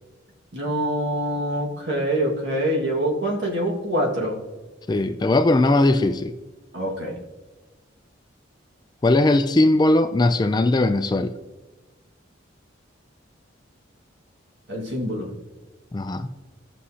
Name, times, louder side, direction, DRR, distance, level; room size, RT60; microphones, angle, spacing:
voice 1, 0.5-4.4 6.7-7.2 14.7-15.3, right 1 dB, 65° right, 1.8 m, -25 dB
voice 2, 4.9-6.3 9.0-11.3 15.9-16.3, left 2 dB, 20° left, 0.3 m, -19 dB
15.0 x 6.2 x 2.8 m
head